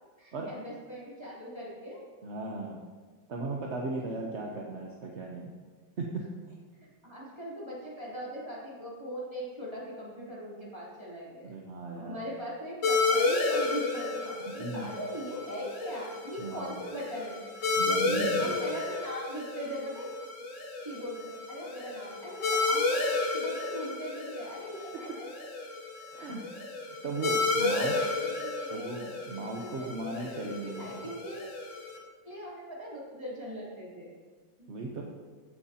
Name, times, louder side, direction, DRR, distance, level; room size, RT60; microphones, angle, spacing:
voice 1, 0.2-2.0 6.8-11.5 12.0-17.5 18.1-20.1 20.8-25.2 27.6-28.9 29.6-29.9 30.4-31.4 32.2-34.1, equal, 15° right, -7 dB, 3.3 m, -40 dB
voice 2, 2.2-2.8 3.3-5.5 6.0-6.2 11.4-12.2 14.6-14.9 16.4-16.8 17.7-18.6 26.1-26.4 27.0-27.9 28.7-31.1 34.7-35.0, right 2 dB, 45° right, -1 dB, 1.0 m, -36 dB
sound 1, 12.8-32.0, left 3 dB, 80° left, 2.4 m, -32 dB
16.0 x 9.5 x 2.9 m, 1.4 s
omnidirectional pair, 2.1 m